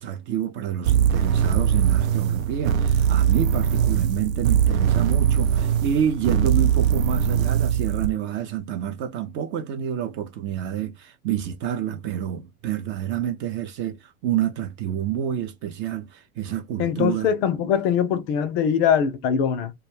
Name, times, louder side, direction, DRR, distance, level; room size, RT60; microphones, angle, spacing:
voice 1, 0.0-17.3, right 9 dB, 30° right, 0.4 m, -28 dB
sound 1, 0.8-8.1, right 8 dB, 70° right, 0.6 m, -21 dB
voice 2, 16.8-19.7, left 8 dB, 45° left, 0.5 m, -22 dB
2.2 x 2.2 x 3.2 m
hypercardioid pair, 90°, 43 cm